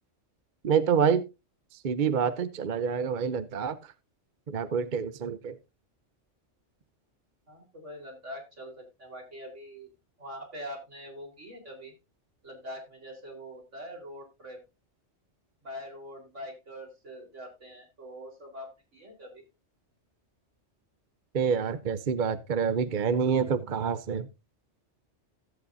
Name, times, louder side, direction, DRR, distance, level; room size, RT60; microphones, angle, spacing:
voice 1, 0.6-1.2 1.8-3.9 4.5-5.6 21.3-24.3, right 6 dB, 50° right, 0.8 m, -27 dB
voice 2, 7.5-9.9 10.2-11.9 12.4-14.6 15.6-19.4, equal, 80° right, 4.4 m, -43 dB
16.0 x 8.3 x 2.6 m
omnidirectional pair, 1.2 m